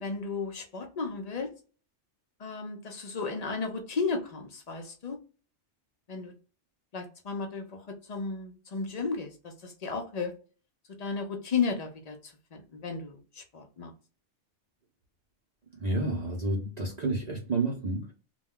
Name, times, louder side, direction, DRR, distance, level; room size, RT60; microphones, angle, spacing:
voice 1, 0.0-1.5 2.4-5.2 6.1-6.3 6.9-10.3 11.0-13.9, left 4 dB, 50° left, 0.5 m, -34 dB
voice 2, 15.7-18.1, right 2 dB, 45° right, 0.6 m, -30 dB
2.2 x 2.2 x 3.5 m
omnidirectional pair, 1.2 m